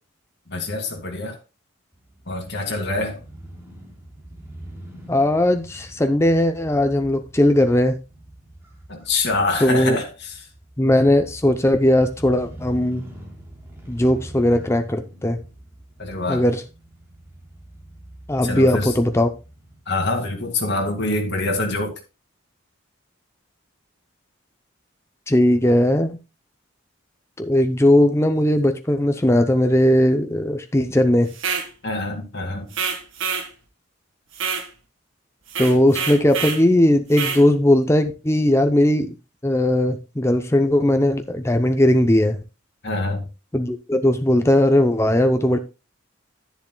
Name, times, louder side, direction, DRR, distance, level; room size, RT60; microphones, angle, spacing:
voice 1, 0.5-1.4 2.3-3.2 8.9-10.4 16.0-16.4 18.4-18.9 19.9-22.0 31.8-32.7 42.8-43.3, left 2 dB, 55° left, 2.3 m, -25 dB
Crow / Motorcycle, 1.9-19.8, right 1 dB, 10° right, 3.2 m, -43 dB
voice 2, 5.1-7.9 9.6-10.0 10.8-13.0 13.9-15.4 16.3-16.6 18.3-19.3 25.3-26.2 27.4-31.3 35.6-39.1 39.4-42.4 43.5-45.6, left 1 dB, 15° left, 0.6 m, -18 dB
sound 1, 31.3-31.7 32.7-33.5 34.3-34.7 35.5-36.6 37.1-37.4, right 6 dB, 70° right, 1.7 m, -26 dB
10.5 x 10.5 x 2.3 m
head